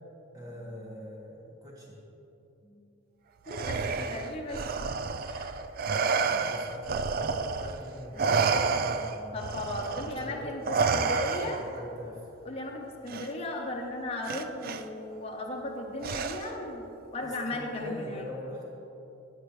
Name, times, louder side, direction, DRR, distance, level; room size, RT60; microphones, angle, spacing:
voice 1, 0.3-2.0 2.6-2.8 3.7-4.1 5.9-9.5 9.9-12.3 17.2-18.7, left 1 dB, 20° right, -4 dB, 1.9 m, -42 dB
voice 2, 3.5-4.6 5.2-5.5 9.3-11.6 12.4-18.2, left 2 dB, 30° left, 0 dB, 0.9 m, -36 dB
Respiratory sounds, 3.5-7.8 8.2-11.8 13.1-13.3 14.3-14.8 16.0-16.7, right 5 dB, 45° right, 0.4 m, -30 dB
13.5 x 8.6 x 3.2 m, 3.0 s
head